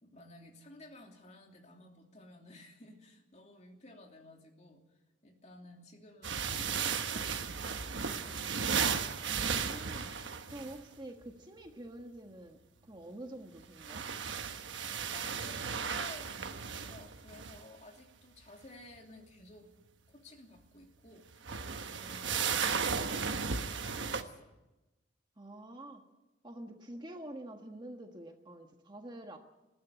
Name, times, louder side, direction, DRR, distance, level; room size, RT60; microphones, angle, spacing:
voice 1, 0.0-7.3 7.6-7.8 8.1-8.7 15.1-19.7 20.1-21.3 21.9-24.5, left 2 dB, 35° left, 2 dB, 2.8 m, -54 dB
sound 1, 6.2-10.8 13.6-17.6 21.3-24.2, right 6 dB, 65° right, 1.2 m, -35 dB
voice 2, 9.2-10.2 10.5-14.0 25.4-26.0 26.4-29.4, right 1 dB, 20° right, 4 dB, 1.5 m, -47 dB
20.0 x 14.0 x 9.5 m, 1.0 s
head